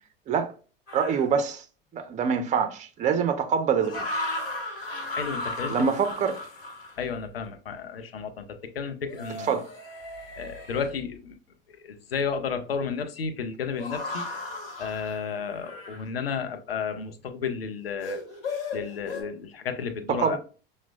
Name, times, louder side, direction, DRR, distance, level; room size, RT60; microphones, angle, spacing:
sound 1, 0.9-1.3 3.8-7.0 9.1-10.9 13.8-16.0 18.0-19.2, left 2 dB, 70° left, 1.0 m, -35 dB
voice 1, 0.9-1.6 1.9-4.0 5.7-6.4 9.5-9.7 20.1-20.4, right 6 dB, 25° right, 0.5 m, -25 dB
voice 2, 5.1-5.9 7.0-9.6 10.4-11.4 11.8-14.3 14.8-18.2 18.7-20.4, left 6 dB, 85° left, 0.5 m, -32 dB
5.8 x 2.1 x 2.3 m
figure-of-eight pair, 75°, 29 cm